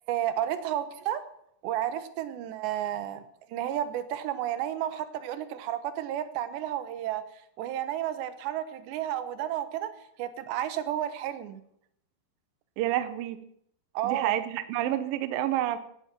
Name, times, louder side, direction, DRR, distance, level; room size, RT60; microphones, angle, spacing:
voice 1, 0.1-1.2 1.6-3.2 3.5-7.2 7.6-9.9 10.2-11.6 13.9-14.4, right 11 dB, 90° right, 11 dB, 3.4 m, -32 dB
voice 2, 12.8-13.4 14.0-15.8, right 12 dB, 70° right, 12 dB, 2.4 m, -29 dB
17.5 x 13.0 x 6.1 m, 0.71 s
omnidirectional pair, 4.9 m